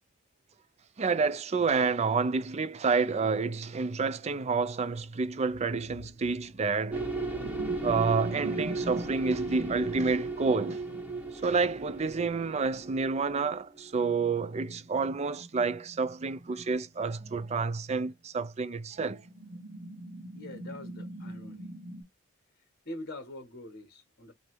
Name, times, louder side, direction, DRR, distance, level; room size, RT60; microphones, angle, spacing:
voice 1, 1.0-7.0 7.8-10.8 11.4-19.2, right 4 dB, 30° right, 0.4 m, -29 dB
sound 1, 5.5-11.1 11.6-11.7 13.9-18.1 18.6-18.7 19.2-22.0, right 1 dB, 85° right, 1.5 m, -44 dB
sound 2, 6.9-14.0, right 3 dB, 5° right, 1.1 m, -36 dB
voice 2, 20.3-21.7 22.8-24.3, left 1 dB, 45° left, 1.1 m, -44 dB
3.2 x 2.7 x 4.5 m
head